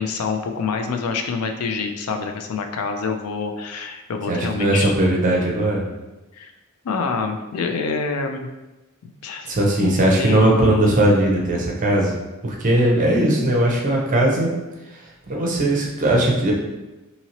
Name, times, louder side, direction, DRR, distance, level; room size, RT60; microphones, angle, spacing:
voice 1, 0.0-4.9 6.3-6.5 6.8-8.5 9.0-9.5 9.8-9.9 10.2-11.0, left 4 dB, 80° left, 5 dB, 0.4 m, -26 dB
voice 2, 4.3-5.8 9.5-12.1 12.4-14.5 14.9-16.5, right 1 dB, 35° right, -1 dB, 0.6 m, -19 dB
2.8 x 2.8 x 2.8 m, 1.1 s
head